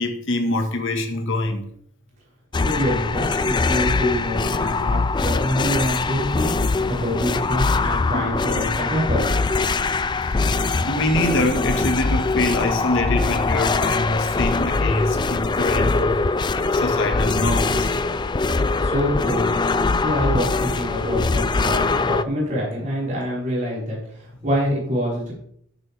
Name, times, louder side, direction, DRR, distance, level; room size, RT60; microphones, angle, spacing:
voice 1, 0.0-1.7 8.1-8.3 10.8-16.2 16.7-17.9, left 2 dB, 60° left, 1.8 m, -24 dB
sound 1, 2.5-22.2, left 3 dB, 20° left, 0.3 m, -22 dB
voice 2, 2.6-6.5 6.9-9.2 18.8-19.5 20.0-25.3, equal, 35° right, 5.2 m, -25 dB
14.0 x 8.2 x 3.5 m
head